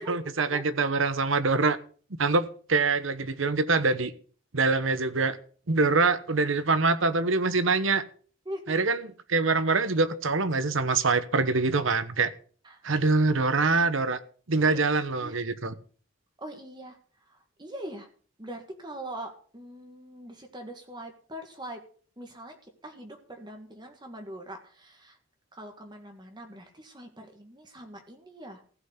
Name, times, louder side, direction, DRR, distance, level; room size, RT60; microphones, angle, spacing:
voice 1, 0.0-1.8 2.2-4.1 4.5-5.4 5.7-8.0 8.7-12.3 12.8-14.2 14.5-15.7, right 3 dB, 80° right, 13 dB, 1.1 m, -24 dB
voice 2, 8.5-8.9 12.6-12.9 14.6-14.8 15.1-15.4 16.4-18.1 18.4-21.8 22.2-25.2 25.5-28.6, right 1 dB, 20° right, 4 dB, 1.7 m, -42 dB
15.5 x 5.6 x 8.0 m, 0.43 s
head